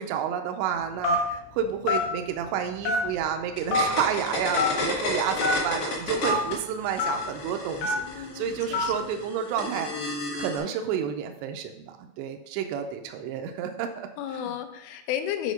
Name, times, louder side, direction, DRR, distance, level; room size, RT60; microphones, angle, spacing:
voice 1, 0.0-14.5, right 8 dB, 80° right, 5 dB, 2.6 m, -30 dB
Telephone, 1.0-1.4 1.9-2.1 2.8-3.2 3.7-3.8 4.6-4.7 5.4-5.5 6.2-6.4 7.0-7.1 7.8-8.0 8.7-8.9, left 3 dB, 70° left, 3.4 m, -24 dB
sound 1, 3.6-6.5 6.8-10.6, left 2 dB, 45° left, 2.3 m, -32 dB
voice 2, 7.9-9.1 14.2-15.5, left 10 dB, 90° left, 6 dB, 3.3 m, -33 dB
8.3 x 4.6 x 5.2 m, 0.82 s
omnidirectional pair, 5.5 m